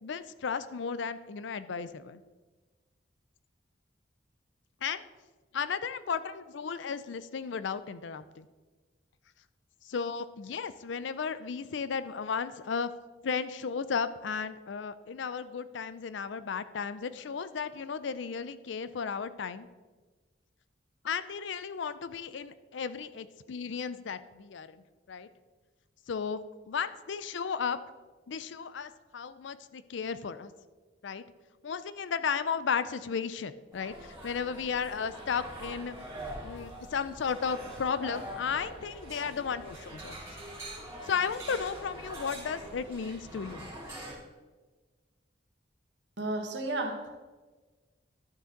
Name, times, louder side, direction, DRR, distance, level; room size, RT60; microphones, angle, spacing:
voice 1, 0.0-2.2 4.8-5.0 5.5-8.5 9.8-12.9 13.2-19.7 21.0-25.3 26.1-26.4 26.7-27.8 28.3-30.5 31.0-31.2 31.6-36.0 36.4-40.2 41.0-43.7, left 6 dB, 80° left, 14 dB, 0.5 m, -34 dB
sound 1, 33.7-44.1, right 1 dB, 15° right, 3.4 m, -44 dB
voice 2, 46.2-47.1, right 2 dB, 75° right, 3 dB, 1.4 m, -33 dB
12.0 x 6.7 x 3.9 m, 1.3 s
head